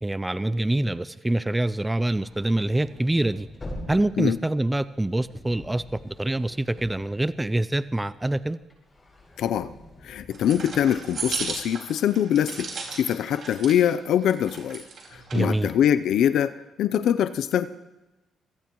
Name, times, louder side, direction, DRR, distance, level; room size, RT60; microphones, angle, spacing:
voice 1, 0.0-3.5 3.9-8.6 15.3-15.7, right 1 dB, 10° right, 16 dB, 0.4 m, -25 dB
sound 1, 2.0-7.9 8.3-11.6, left 1 dB, 25° left, 8.0 m, -45 dB
voice 2, 9.4-9.7 10.0-14.8 15.1-17.7, left 10 dB, 75° left, 12 dB, 0.5 m, -23 dB
sound 2, 10.3-13.9 14.2-15.4, right 4 dB, 55° right, 4.9 m, -35 dB
26.0 x 17.5 x 3.1 m, 1.0 s
cardioid pair, 90°, 0 cm